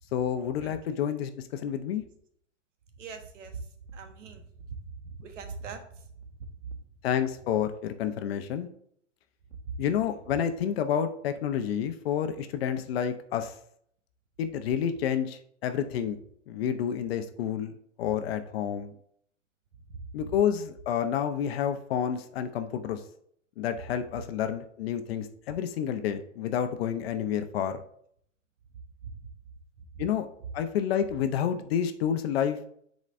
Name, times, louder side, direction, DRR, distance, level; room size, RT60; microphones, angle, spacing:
voice 1, 0.1-2.0 7.0-8.7 9.8-13.5 14.4-16.2 16.5-18.9 20.1-23.0 23.6-27.8 30.0-30.3 30.5-32.7, left 9 dB, 50° left, 8 dB, 0.8 m, -29 dB
voice 2, 3.0-4.5 4.9-6.1 6.4-6.8 9.5-9.8 19.9-20.1 29.0-29.1, right 4 dB, 70° right, 7 dB, 1.2 m, -41 dB
9.7 x 4.1 x 2.6 m, 0.65 s
hypercardioid pair, 130°, 38 cm